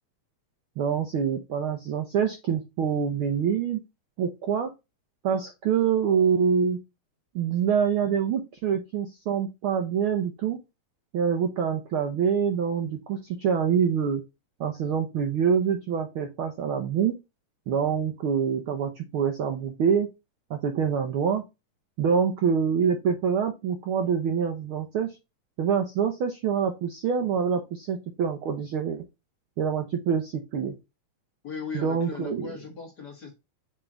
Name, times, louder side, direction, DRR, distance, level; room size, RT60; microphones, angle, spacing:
voice 1, 0.8-3.8 4.2-4.7 5.2-6.8 7.3-10.6 11.1-14.2 14.6-17.1 17.7-20.1 20.5-21.4 22.0-25.1 25.6-29.0 29.6-30.7 31.7-32.5, right 7 dB, 70° right, 1.3 m, -25 dB
voice 2, 31.4-33.3, left 5 dB, 40° left, 1.8 m, -37 dB
7.5 x 3.5 x 3.8 m
omnidirectional pair, 3.4 m